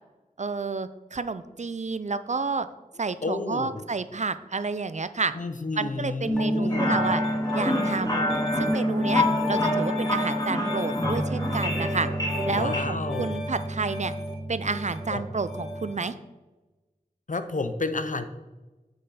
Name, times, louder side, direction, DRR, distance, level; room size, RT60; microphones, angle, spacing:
voice 1, 0.4-2.7 3.0-5.3 5.8-7.2 7.5-8.2 8.6-12.1 12.5-14.1 14.5-16.2, right 4 dB, 50° right, 12 dB, 0.4 m, -30 dB
voice 2, 3.2-3.8 5.3-7.1 12.5-13.3 15.1-15.2 17.3-18.3, left 3 dB, 60° left, 9 dB, 0.7 m, -31 dB
Piano, 6.3-16.0, left 1 dB, ahead, 2.1 m, -29 dB
sound 1, 6.7-12.8, left 1 dB, 25° left, 2.0 m, -28 dB
6.5 x 5.2 x 5.6 m, 1.1 s
wide cardioid pair, 50°, 15 cm